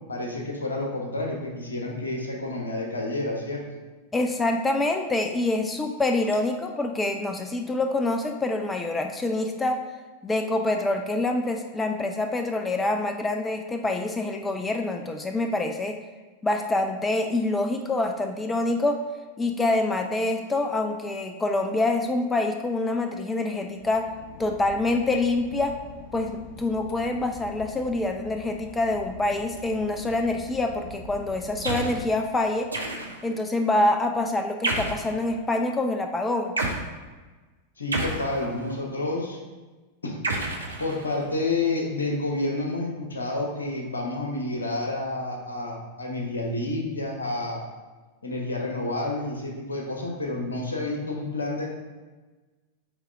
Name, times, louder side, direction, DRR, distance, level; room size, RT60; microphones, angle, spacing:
voice 1, 0.1-3.6 37.8-39.4 40.0-40.2 40.8-47.6 48.2-51.7, left 2 dB, 75° left, 0 dB, 1.2 m, -29 dB
voice 2, 4.1-9.8 10.2-16.0 16.4-19.0 19.4-24.1 24.4-25.8 26.1-32.7 33.2-36.6, left 2 dB, 15° left, 5 dB, 0.5 m, -26 dB
Boat Water vehicle / Engine, 23.7-32.7, left 4 dB, 50° left, 0.8 m, -44 dB
sound 1, 31.6-32.0 32.7-33.3 34.6-35.1 36.6-36.8 37.9-38.8 40.2-41.3, right 2 dB, 80° right, 0.9 m, -29 dB
8.7 x 3.4 x 3.6 m, 1.3 s
figure-of-eight pair, 90°, 0 cm